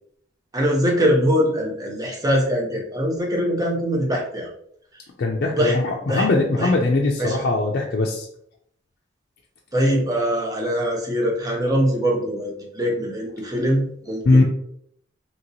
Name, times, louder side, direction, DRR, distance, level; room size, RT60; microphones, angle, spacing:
voice 1, 0.5-4.5 5.5-5.8 6.1-6.3 6.6-6.7 7.2-7.4 9.7-14.4, equal, 20° right, -1 dB, 0.6 m, -22 dB
voice 2, 5.2-8.3 14.3-14.4, left 2 dB, 55° left, -1 dB, 0.4 m, -20 dB
2.9 x 2.8 x 2.7 m, 0.69 s
head